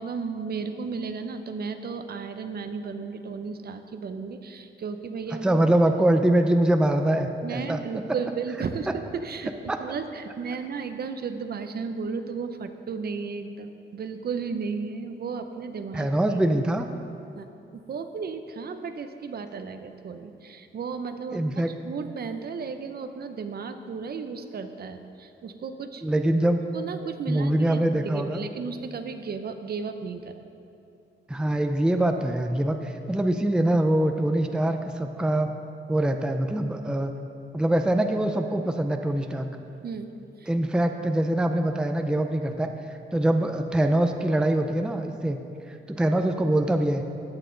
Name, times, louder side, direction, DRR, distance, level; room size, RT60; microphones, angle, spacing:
voice 1, 0.0-5.6 7.4-9.5 9.8-16.4 17.4-26.0 26.7-30.5 39.8-40.1 40.4-40.5, right 5 dB, 50° right, 8 dB, 0.7 m, -34 dB
voice 2, 5.4-7.8 9.7-9.8 15.9-16.9 21.3-21.7 26.0-26.6 27.3-28.4 31.3-35.5 35.9-37.1 37.5-39.5 40.5-45.4 45.7-47.0, right 1 dB, 5° right, 6 dB, 0.5 m, -24 dB
14.0 x 9.0 x 3.9 m, 2.7 s
cardioid pair, 125°, 20 cm